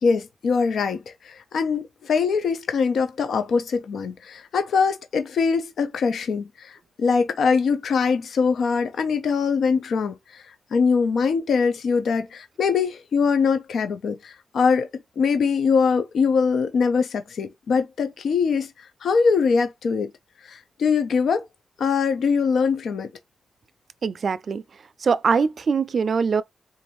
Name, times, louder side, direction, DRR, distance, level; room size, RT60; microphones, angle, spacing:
voice 1, 0.0-10.4 10.7-14.9 15.2-18.7 19.0-20.1 20.4-21.4 21.8-23.1, left 5 dB, 85° left, 0.5 m, -22 dB
voice 2, 24.0-24.6 25.0-26.4, right 5 dB, 60° right, 0.3 m, -22 dB
3.7 x 2.6 x 3.0 m
cardioid pair, 85°, 0 cm